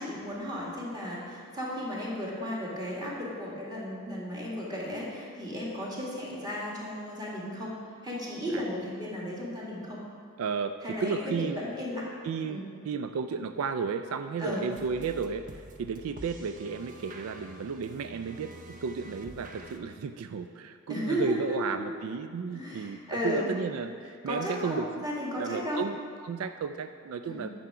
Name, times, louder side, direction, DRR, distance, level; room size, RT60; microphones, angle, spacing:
voice 1, 0.0-10.0 10.8-12.1 12.5-12.6 14.4-14.6 20.9-21.8 22.5-23.5 24.3-25.8 27.2-27.5, left 1 dB, 20° right, -5 dB, 2.0 m, -34 dB
voice 2, 10.4-10.7 11.0-11.6 12.2-25.1 25.3-27.5, right 5 dB, 80° right, 9 dB, 0.3 m, -33 dB
sound 1, 14.7-19.8, right 1 dB, 40° right, 0.6 m, -47 dB
9.4 x 6.8 x 4.9 m, 2.2 s
head